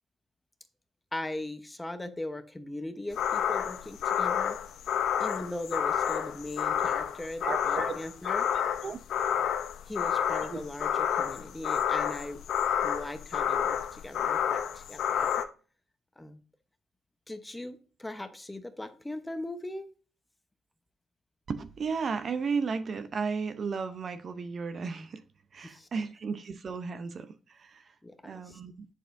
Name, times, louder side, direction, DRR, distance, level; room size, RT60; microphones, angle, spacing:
voice 1, 1.1-4.6 5.2-8.5 9.9-12.4 12.8-15.5 16.2-16.4 17.3-19.9 25.6-25.9 28.0-28.6, left 1 dB, 10° left, 0.9 m, -39 dB
sound 1, 3.2-15.4, left 9 dB, 75° left, 0.6 m, -29 dB
voice 2, 7.4-7.9 8.2-8.3 8.8-9.0 10.5-10.6 21.5-25.2 25.5-27.9 28.2-28.9, right 5 dB, 50° right, 0.6 m, -34 dB
7.7 x 6.6 x 2.6 m
cardioid pair, 90°, 0 cm